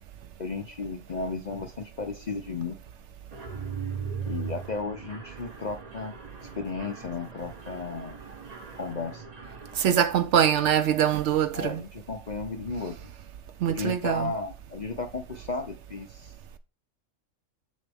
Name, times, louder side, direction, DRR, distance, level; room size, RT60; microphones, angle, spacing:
voice 1, 0.4-2.8 4.3-6.1 6.5-8.2 8.8-9.2 11.5-12.9 13.7-16.3, left 4 dB, 45° left, 0.6 m, -34 dB
Mechanisms, 3.3-10.0, right 6 dB, 35° right, 0.8 m, -39 dB
voice 2, 9.8-11.8 13.6-14.3, right 9 dB, 65° right, 0.8 m, -23 dB
7.1 x 6.4 x 3.4 m
omnidirectional pair, 1.4 m